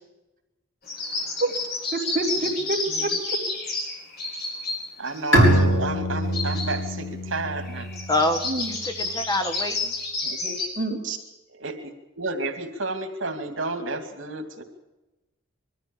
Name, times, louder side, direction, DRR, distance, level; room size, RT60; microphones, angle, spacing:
sound 1, 0.9-4.8 5.1-5.6 6.3-6.9 7.3-7.4 7.6-10.7, left 3 dB, 55° left, 5.5 m, -30 dB
voice 1, 1.9-3.4 8.5-8.7 10.8-11.2, right 2 dB, 40° right, -1 dB, 3.6 m, -27 dB
voice 2, 2.4-3.1 5.0-7.9 10.2-10.6 11.6-11.8 12.2-14.6, right 2 dB, 80° right, 5 dB, 2.6 m, -31 dB
Bowed string instrument, 5.3-8.8, right 1 dB, 75° left, 5.1 m, -23 dB
voice 3, 8.1-9.9, left 1 dB, 20° left, 6 dB, 1.3 m, -26 dB
22.0 x 14.0 x 8.8 m, 1.0 s
head